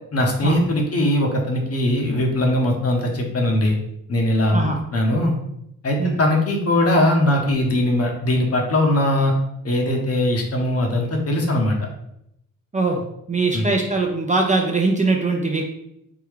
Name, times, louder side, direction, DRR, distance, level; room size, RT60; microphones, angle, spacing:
voice 1, 0.1-3.8 4.1-5.3 5.8-9.3 9.6-11.8 13.5-13.7, left 1 dB, 45° left, 1 dB, 0.8 m, -20 dB
voice 2, 13.3-15.6, right 3 dB, 20° right, 1 dB, 0.5 m, -21 dB
3.6 x 2.2 x 3.2 m, 0.78 s
cardioid pair, 70°, 35 cm